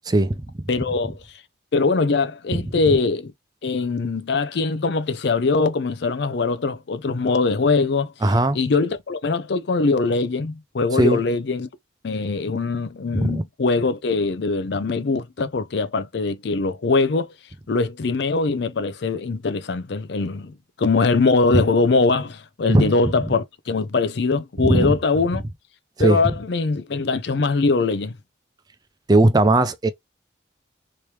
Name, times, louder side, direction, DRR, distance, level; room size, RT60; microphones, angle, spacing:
voice 1, 0.1-0.5 8.2-8.6 11.0-11.2 13.2-13.4 21.5-21.6 22.7-22.9 24.6-25.0 26.0-26.2 29.1-29.9, right 2 dB, 20° right, 0.4 m, -18 dB
voice 2, 0.7-1.2 1.7-3.3 3.6-8.1 8.5-11.7 12.0-17.3 17.7-25.4 26.0-28.2, left 3 dB, 60° left, 0.5 m, -22 dB
3.2 x 2.8 x 3.2 m
head